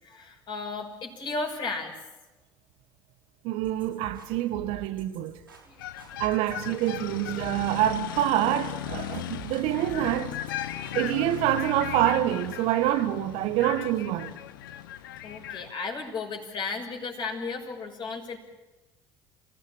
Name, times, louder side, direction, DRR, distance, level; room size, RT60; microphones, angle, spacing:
voice 1, 0.0-1.9 5.6-5.8 6.1-6.2 15.2-18.4, left 4 dB, 45° left, 6.0 m, -34 dB
voice 2, 3.4-5.4 6.2-10.3 10.9-14.3, right 13 dB, 60° right, 1.2 m, -26 dB
sound 1, 3.6-11.5, right 2 dB, 90° right, 4.2 m, -48 dB
sound 2, 5.8-15.7, left 12 dB, 75° left, 1.0 m, -37 dB
28.5 x 17.5 x 9.0 m
figure-of-eight pair, 55°, 11 cm